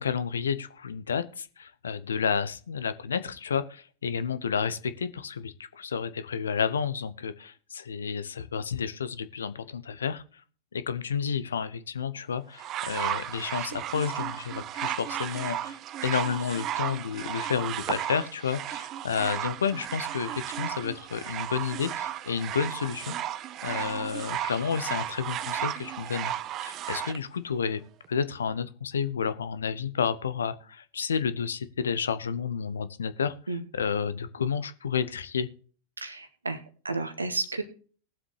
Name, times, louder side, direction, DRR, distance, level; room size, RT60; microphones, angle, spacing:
voice 1, 0.0-10.2 10.7-23.1 23.6-26.3 26.6-27.8 28.1-33.3 33.7-35.5, left 6 dB, 70° left, 14 dB, 0.8 m, -31 dB
sound 1, 12.6-27.2 28.0-28.1, right 11 dB, 35° right, 0.5 m, -34 dB
voice 2, 36.0-37.6, right 3 dB, 80° right, 10 dB, 1.4 m, -32 dB
19.5 x 7.4 x 3.2 m, 0.41 s
figure-of-eight pair, 90°, 0 cm